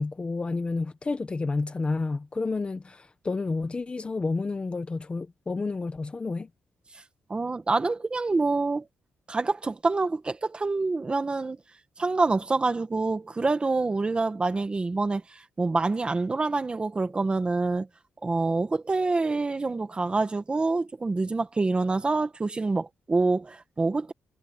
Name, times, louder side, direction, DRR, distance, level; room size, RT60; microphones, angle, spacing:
voice 1, 0.0-6.5, left 3 dB, 25° left, 1.0 m, -30 dB
voice 2, 7.3-8.8 9.3-11.6 12.0-17.9 18.2-24.1, right 3 dB, 20° right, 1.6 m, -26 dB
wide cardioid pair, 145°, 5 cm